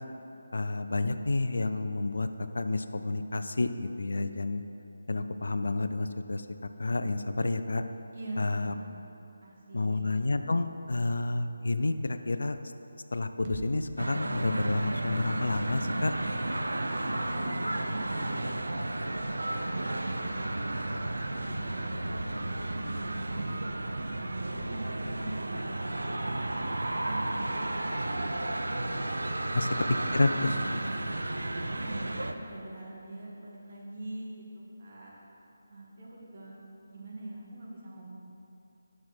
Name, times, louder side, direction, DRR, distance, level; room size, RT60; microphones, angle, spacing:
voice 1, 0.5-2.3 2.5-4.6 5.1-6.4 6.8-7.8 8.4-8.7 9.7-12.6 13.1-16.1 29.5-29.7 30.1-30.3, left 2 dB, 70° left, 9 dB, 0.4 m, -30 dB
voice 2, 8.1-8.9 9.4-10.0 17.1-17.6 17.9-18.6 19.0-22.8 23.1-23.5 24.1-26.6 27.0-27.7 28.0-28.4 29.4-29.8 30.4-30.9 31.6-32.2 32.4-35.1 35.7-38.1, right 2 dB, 50° right, -5 dB, 2.1 m, -43 dB
sound 1, 13.4-17.3, right 3 dB, 30° right, 0.7 m, -49 dB
sound 2, 14.0-32.3, right 1 dB, 80° right, 0.5 m, -33 dB
9.2 x 6.1 x 4.5 m, 2.8 s
figure-of-eight pair, 155°, 0 cm